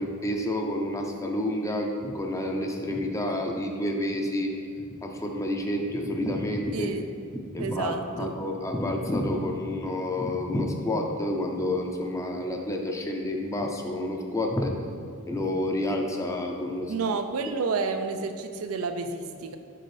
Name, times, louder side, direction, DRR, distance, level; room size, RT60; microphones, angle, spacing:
voice 1, 0.0-4.5 4.9-6.9 7.3-14.9 15.2-16.9 17.4-17.5, left 1 dB, 15° left, 2 dB, 0.5 m, -29 dB
voice 2, 6.7-7.1 7.6-8.4 16.9-19.6, right 4 dB, 90° right, 7 dB, 0.5 m, -30 dB
6.7 x 5.2 x 3.2 m, 2.5 s
head